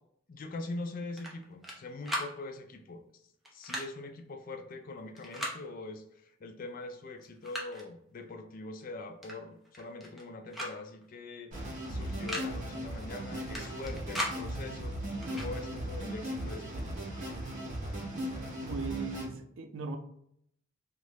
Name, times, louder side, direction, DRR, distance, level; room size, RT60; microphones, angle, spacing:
voice 1, 0.3-3.2 3.5-14.9 15.3-17.0, left 2 dB, 45° left, 7 dB, 0.4 m, -43 dB
sound 1, 1.2-1.8 2.0-2.3 3.4-3.9 5.2-5.6 6.7-6.8 7.2-7.8 9.2-9.4 9.6-10.2 10.5-10.7 11.0-11.1 12.1-12.5 13.5-14.4 15.2-15.5, equal, ahead, 0.6 m, -37 dB
sound 2, 11.5-19.3, right 1 dB, 40° right, 1.1 m, -37 dB
voice 2, 18.6-20.0, right 4 dB, 80° right, 5 dB, 0.5 m, -38 dB
3.0 x 2.5 x 3.2 m, 0.72 s
head